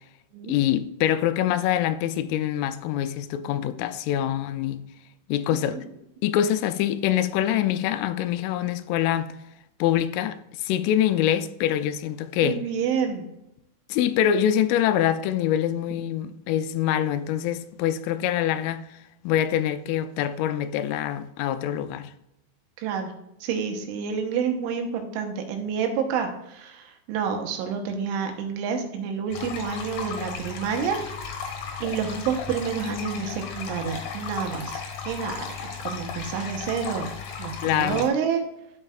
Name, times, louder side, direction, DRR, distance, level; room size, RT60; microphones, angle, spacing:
voice 1, 0.5-4.8 5.3-5.8 6.2-9.3 9.8-12.6 13.9-19.0 19.2-22.1 37.6-38.1, left 11 dB, 90° left, 3.1 m, -25 dB
voice 2, 12.4-13.3 22.8-23.1 23.4-31.0 31.5-35.4 35.8-37.1 37.4-38.4, right 6 dB, 85° right, 3.4 m, -28 dB
sound 1, 29.3-38.1, left 6 dB, 65° left, 2.4 m, -35 dB
12.0 x 5.5 x 2.4 m
omnidirectional pair, 5.6 m